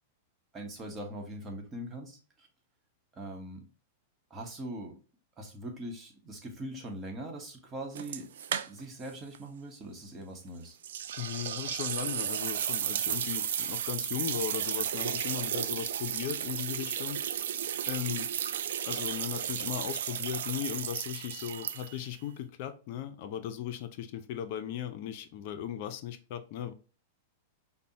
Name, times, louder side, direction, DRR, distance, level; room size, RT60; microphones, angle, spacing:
voice 1, 0.5-2.5 3.1-3.6 4.3-5.0 5.4-8.3 8.6-10.8, right 1 dB, 25° right, 1.0 m, -41 dB
sound 1, 8.0-9.1 9.3-9.4 10.8-22.1, right 9 dB, 75° right, 0.3 m, -34 dB
voice 2, 11.2-17.2 17.9-18.3 18.9-26.7, left 10 dB, 55° left, 0.4 m, -37 dB
5.1 x 2.1 x 2.8 m
hypercardioid pair, 120°, 0 cm